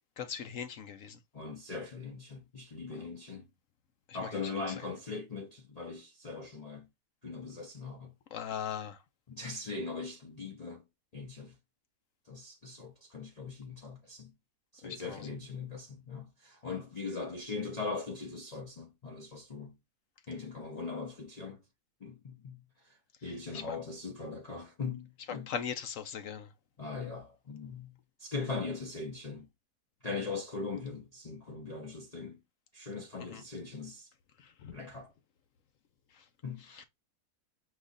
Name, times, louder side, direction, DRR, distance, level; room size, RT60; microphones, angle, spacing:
voice 1, 0.2-1.2 2.9-3.0 4.1-4.6 8.3-9.0 14.8-15.3 23.5-23.8 25.5-26.5 33.2-33.4 34.4-34.8 36.2-36.3 36.7-36.8, left 8 dB, 65° left, 1.0 m, -40 dB
voice 2, 1.3-3.5 4.1-6.9 7.2-8.1 9.3-10.8 11.1-11.5 12.3-14.3 14.7-19.7 20.3-21.6 22.0-23.0 23.2-25.5 26.8-27.9 28.2-29.5 30.0-32.4 32.7-34.1 34.7-35.1 36.4-36.8, left 4 dB, 40° left, 0.6 m, -40 dB
5.0 x 2.4 x 3.9 m
omnidirectional pair, 1.6 m